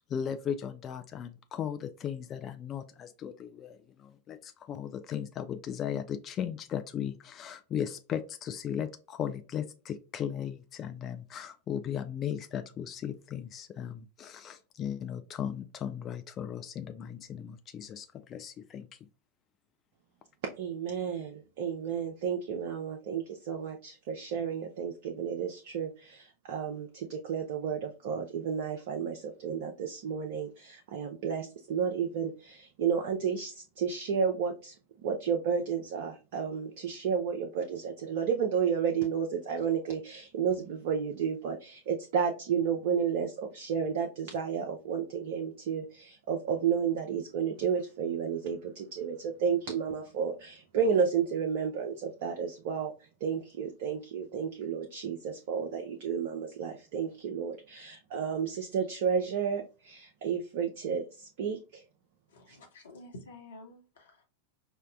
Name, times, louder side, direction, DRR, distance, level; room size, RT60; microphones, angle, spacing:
voice 1, 0.0-19.0, left 9 dB, 30° left, 8 dB, 0.3 m, -37 dB
voice 2, 20.6-34.7 35.0-52.9 53.2-61.8 62.5-62.6, right 7 dB, 50° right, 3 dB, 0.5 m, -32 dB
voice 3, 62.3-64.3, left 1 dB, 65° left, 1 dB, 1.1 m, -50 dB
5.2 x 2.1 x 2.3 m, 0.34 s
figure-of-eight pair, 90°, 0 cm